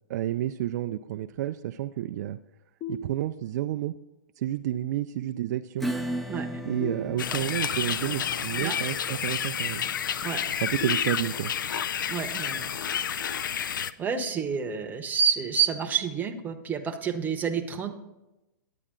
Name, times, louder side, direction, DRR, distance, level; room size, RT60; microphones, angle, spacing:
voice 1, 0.1-2.4 2.9-3.9 4.4-5.9 6.7-9.8 10.6-11.5, right 13 dB, 55° right, 7 dB, 0.3 m, -30 dB
sound 1, 2.8-3.8 6.8-7.8 10.8-11.8, left 4 dB, 35° left, 1.0 m, -40 dB
Acoustic guitar / Strum, 5.8-13.0, equal, ahead, 0.5 m, -38 dB
sound 2, 7.2-13.9, left 8 dB, 80° left, 0.4 m, -30 dB
voice 2, 12.1-12.7 14.0-17.9, right 7 dB, 15° right, 5 dB, 0.8 m, -28 dB
10.0 x 8.5 x 3.7 m, 0.97 s
hypercardioid pair, 125°, 11 cm